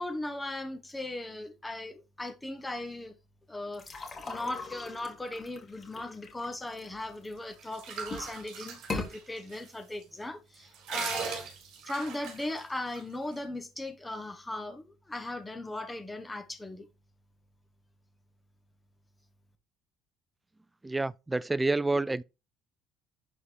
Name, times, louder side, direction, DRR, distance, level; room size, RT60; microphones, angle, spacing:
voice 1, 0.0-3.1 3.5-11.5 11.9-16.9, left 2 dB, 10° left, 1.3 m, -38 dB
sound 1, 3.7-7.5 8.0-8.4 8.8-9.1, left 3 dB, 25° left, 2.3 m, -40 dB
sound 2, 7.2-9.7 10.0-10.1 10.5-13.0, right 6 dB, 65° right, 3.3 m, -39 dB
voice 2, 20.8-22.2, right 2 dB, 10° right, 0.3 m, -28 dB
11.0 x 4.1 x 5.1 m
cardioid pair, 145°, 0 cm